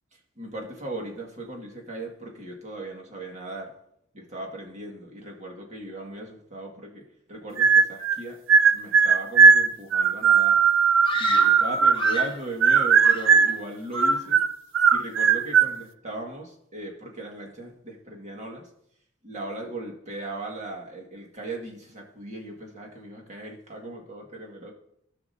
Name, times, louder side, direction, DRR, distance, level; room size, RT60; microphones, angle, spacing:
voice 1, 0.1-3.8 4.1-8.4 8.7-10.6 11.2-14.4 14.9-18.7 19.2-24.7, right 1 dB, 35° right, 0 dB, 1.9 m, -38 dB
sound 1, 7.6-8.2 8.5-12.3 12.6-13.6 13.9-15.8, right 6 dB, 75° right, 0.5 m, -18 dB
Screaming, 11.0-12.5 13.0-13.7 13.9-14.4, left 5 dB, 25° left, 0.7 m, -34 dB
17.0 x 6.0 x 2.7 m, 0.74 s
head